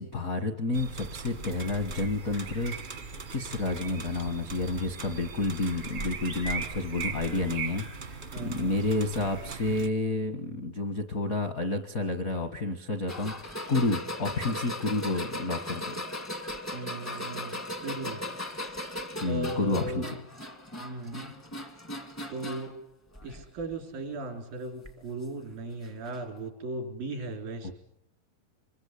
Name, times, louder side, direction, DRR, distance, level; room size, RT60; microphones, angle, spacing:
voice 1, 0.0-2.7 3.3-15.9 19.2-20.0 27.6-27.7, left 2 dB, 65° left, 6 dB, 0.8 m, -30 dB
sound 1, 0.7-9.9, right 5 dB, 60° right, 0.7 m, -39 dB
voice 2, 8.3-8.8 16.7-18.3 19.2-20.2 20.8-21.3 22.3-22.7 23.2-27.7, right 2 dB, 90° right, 5 dB, 5.7 m, -37 dB
sound 2, 13.1-22.7 23.1-23.7 24.8-24.9 26.1-26.2, left 1 dB, 20° left, 0.4 m, -38 dB
25.5 x 23.0 x 8.4 m, 0.73 s
omnidirectional pair, 4.0 m